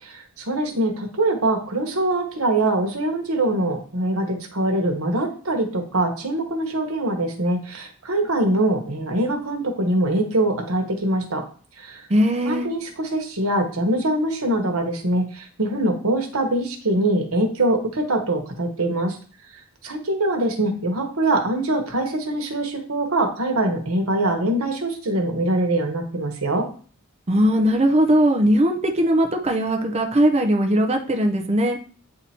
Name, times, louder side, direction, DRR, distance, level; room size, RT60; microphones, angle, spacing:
voice 1, 0.0-11.4 11.8-12.1 12.4-19.2 19.8-26.7, right 1 dB, 85° right, 4 dB, 1.3 m, -23 dB
voice 2, 12.1-12.7 27.3-31.8, equal, 30° right, 3 dB, 0.6 m, -19 dB
8.3 x 2.9 x 4.3 m, 0.41 s
head